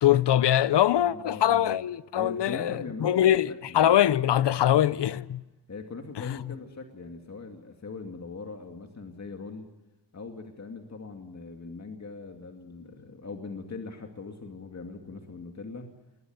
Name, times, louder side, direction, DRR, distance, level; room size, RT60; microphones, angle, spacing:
voice 1, 0.0-5.4 6.2-6.4, left 11 dB, 80° left, 0.8 m, -23 dB
voice 2, 1.0-1.7 2.1-4.0 4.4-5.2 5.7-9.7 10.1-15.9, left 4 dB, 40° left, 2.5 m, -41 dB
21.5 x 20.5 x 9.4 m
wide cardioid pair, 105°, 41 cm